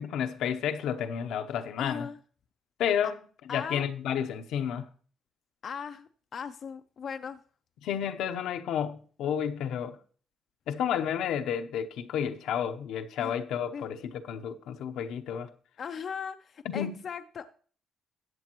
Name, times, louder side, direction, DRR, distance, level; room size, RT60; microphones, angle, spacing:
voice 1, 0.0-2.1 2.8-3.2 3.5-4.9 7.8-10.0 10.7-15.5 16.6-16.9, left 8 dB, 85° left, 0.8 m, -31 dB
voice 2, 1.8-2.2 3.5-3.8 5.6-7.4 13.2-13.4 13.7-13.9 15.8-17.5, left 6 dB, 55° left, 0.5 m, -38 dB
14.0 x 8.2 x 3.0 m
cardioid pair, 90°, 0 cm